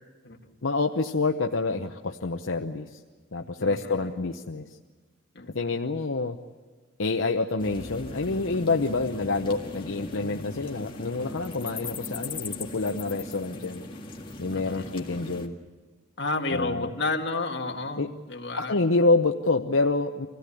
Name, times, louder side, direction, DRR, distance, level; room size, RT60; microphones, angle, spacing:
voice 1, 0.6-2.9 3.3-4.7 5.5-6.4 7.0-13.8 14.4-15.6 16.5-16.9 18.0-18.1 18.6-20.3, left 3 dB, 75° left, 4 dB, 0.9 m, -27 dB
voice 2, 3.6-4.2 5.3-5.9 14.5-15.0 16.2-18.8, left 3 dB, 55° left, 1 dB, 2.2 m, -32 dB
sound 1, 7.6-15.5, left 2 dB, 25° left, 1.9 m, -39 dB
25.5 x 17.0 x 9.9 m, 1.3 s
head